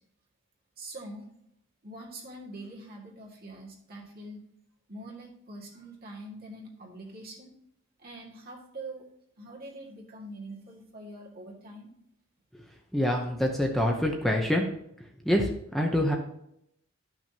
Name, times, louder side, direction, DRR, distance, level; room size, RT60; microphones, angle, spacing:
voice 1, 0.8-1.3 1.8-4.4 4.9-7.5 8.0-9.0 9.4-11.9, right 1 dB, 50° right, -2 dB, 2.0 m, -44 dB
voice 2, 12.9-14.7 15.2-16.1, equal, ahead, 0 dB, 0.8 m, -26 dB
12.5 x 6.0 x 2.8 m, 0.75 s
head